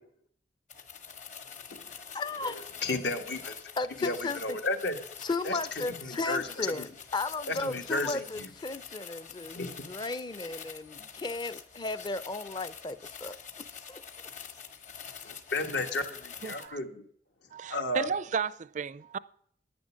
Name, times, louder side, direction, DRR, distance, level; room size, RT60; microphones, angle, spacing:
sound 1, 0.7-16.7, left 7 dB, 45° left, 1.3 m, -46 dB
voice 1, 2.1-2.7 3.8-4.6 5.2-14.0, left 3 dB, 25° left, 0.5 m, -35 dB
voice 2, 2.8-3.6 4.0-5.0 5.4-5.6 6.0-6.7 7.5-8.5 9.5-9.7 15.2-17.0 17.7-18.1, left 2 dB, 75° left, 1.5 m, -33 dB
voice 3, 16.4-16.8 17.5-19.2, right 6 dB, 45° right, 0.4 m, -33 dB
10.5 x 9.6 x 6.3 m
head